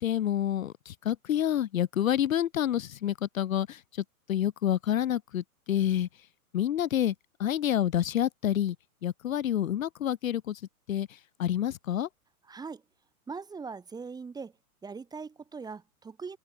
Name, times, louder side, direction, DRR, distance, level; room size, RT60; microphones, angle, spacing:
voice 1, 0.0-3.8 4.3-6.1 6.5-7.1 7.4-8.7 9.0-10.6 10.9-11.1 11.4-12.1, left 11 dB, 65° left, 1.6 m, -28 dB
voice 2, 12.5-12.8 13.3-14.5 14.8-16.4, right 5 dB, 10° right, 1.6 m, -40 dB
open air
hypercardioid pair, 125°, 44 cm